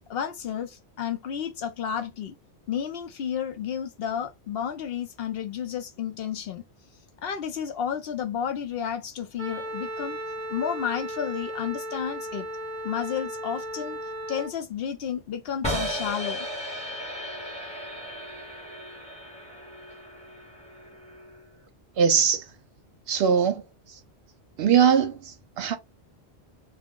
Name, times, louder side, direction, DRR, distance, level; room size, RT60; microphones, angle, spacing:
voice 1, 0.1-2.4 2.7-6.6 7.2-10.2 10.5-12.5 12.8-14.0 14.3-16.5, left 8 dB, 65° left, 0.7 m, -31 dB
Wind instrument woodwind instrument, 9.4-14.5, right 1 dB, 15° right, 0.6 m, -35 dB
sound 1, 15.6-21.6, equal, 5° left, 0.9 m, -35 dB
voice 2, 22.0-22.4 23.1-23.6 24.6-25.8, right 7 dB, 70° right, 0.8 m, -21 dB
2.3 x 2.0 x 3.5 m
omnidirectional pair, 1.1 m